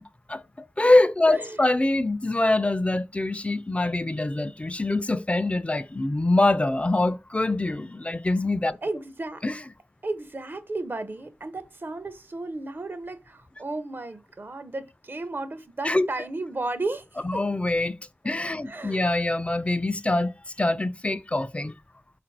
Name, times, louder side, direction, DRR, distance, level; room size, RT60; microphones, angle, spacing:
voice 1, 0.3-8.8 9.4-9.6 15.8-16.1 17.2-17.9 18.2-20.3 20.6-21.7, left 2 dB, 30° left, 0.3 m, -24 dB
voice 2, 8.8-9.4 10.0-17.4 18.2-18.3 18.7-19.1, right 2 dB, 55° right, 0.6 m, -34 dB
4.1 x 2.5 x 4.5 m
cardioid pair, 40°, 4 cm